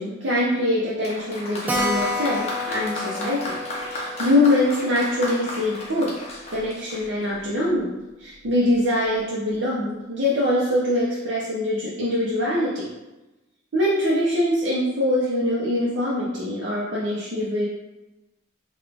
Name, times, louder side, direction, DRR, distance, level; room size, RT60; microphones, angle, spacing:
voice 1, 0.0-3.6 3.9-6.1 6.5-7.9 8.2-12.9 13.7-17.7, left 1 dB, 65° right, -7 dB, 0.6 m, -23 dB
Applause, 1.0-7.5, left 1 dB, 30° left, 0.7 m, -34 dB
Keyboard (musical), 1.7-6.7 7.0-7.1 7.4-7.5 7.7-7.8 8.4-8.8, left 2 dB, 10° right, 0.3 m, -31 dB
3.9 x 2.3 x 3.4 m, 1.1 s
head